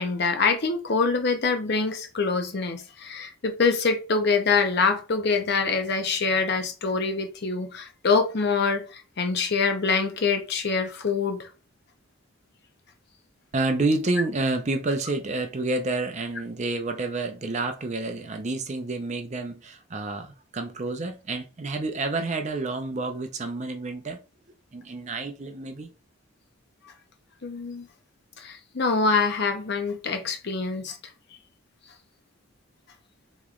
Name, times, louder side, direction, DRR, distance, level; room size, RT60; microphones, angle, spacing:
voice 1, 0.0-11.5 27.4-27.9 28.4-31.0, left 4 dB, 50° left, 0.7 m, -25 dB
voice 2, 13.5-24.2 24.7-25.9, right 2 dB, 35° right, 0.5 m, -29 dB
3.0 x 3.0 x 3.7 m
head